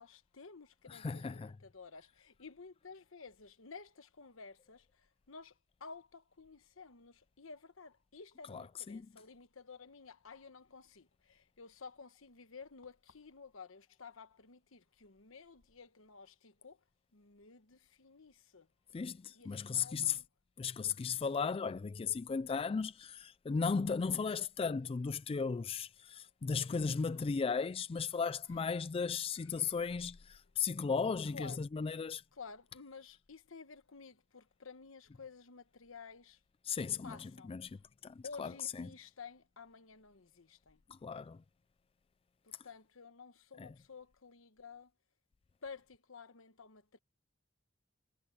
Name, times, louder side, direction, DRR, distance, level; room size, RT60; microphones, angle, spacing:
voice 1, 0.0-4.9 5.3-5.5 5.8-16.8 17.1-18.7 19.3-20.2 29.4-29.8 31.3-31.6 32.3-36.4 37.0-37.5 38.2-40.8 42.4-44.9 45.6-47.0, left 5 dB, 80° left, 1.2 m, -53 dB
voice 2, 0.9-1.6 8.5-9.1 18.9-20.2 20.6-32.2 36.6-37.8 38.0-38.9 40.9-41.4 43.6-43.7, left 5 dB, 30° left, 0.3 m, -36 dB
head